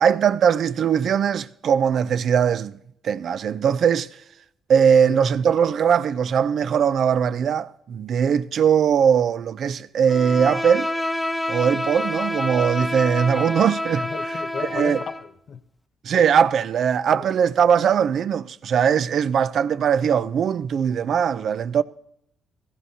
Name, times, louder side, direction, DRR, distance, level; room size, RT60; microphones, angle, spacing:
voice 1, 0.0-2.8 3.0-4.1 4.7-10.9 11.5-14.1 14.7-15.0 16.0-21.8, right 7 dB, 60° right, 0.4 m, -20 dB
voice 2, 5.0-5.3 14.0-15.6 17.1-17.2, left 6 dB, 55° left, 0.6 m, -34 dB
Bowed string instrument, 10.1-15.3, left 1 dB, 10° left, 0.7 m, -28 dB
16.5 x 15.0 x 2.8 m
cardioid pair, 90°, 0 cm